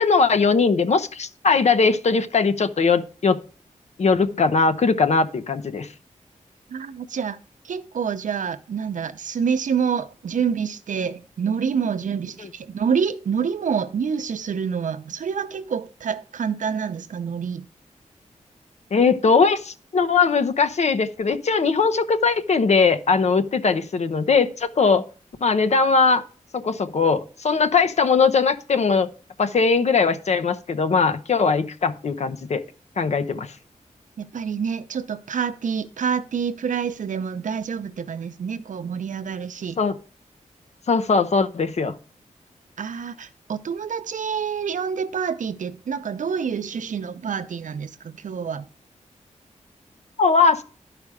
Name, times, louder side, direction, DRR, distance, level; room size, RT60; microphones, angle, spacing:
voice 1, 0.0-3.4 4.0-5.9 18.9-25.0 25.4-26.2 26.5-29.1 29.4-32.6 33.0-33.5 39.8-39.9 40.9-41.9 50.2-50.6, left 4 dB, 60° left, 0.8 m, -20 dB
voice 2, 6.7-7.4 7.6-17.7 33.3-33.4 34.2-39.8 42.8-48.6, right 6 dB, 80° right, 0.7 m, -27 dB
12.0 x 5.0 x 4.9 m
wide cardioid pair, 140°, 13 cm